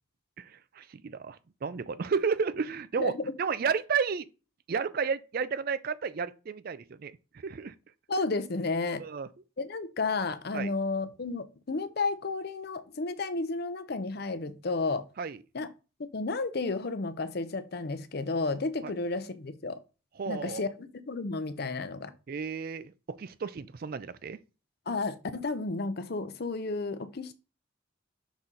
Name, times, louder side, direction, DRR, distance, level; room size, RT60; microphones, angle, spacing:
voice 1, 0.4-3.1 3.4-4.2 4.7-7.7 9.0-9.3 10.5-10.7 15.2-15.4 18.8-18.9 20.2-20.6 22.3-24.4, right 6 dB, 45° right, 0.4 m, -32 dB
voice 2, 3.0-3.3 8.1-9.0 9.6-15.0 15.5-15.7 16.0-19.8 20.3-22.1 24.9-27.3, left 3 dB, 50° left, 0.6 m, -32 dB
6.1 x 4.1 x 3.7 m
head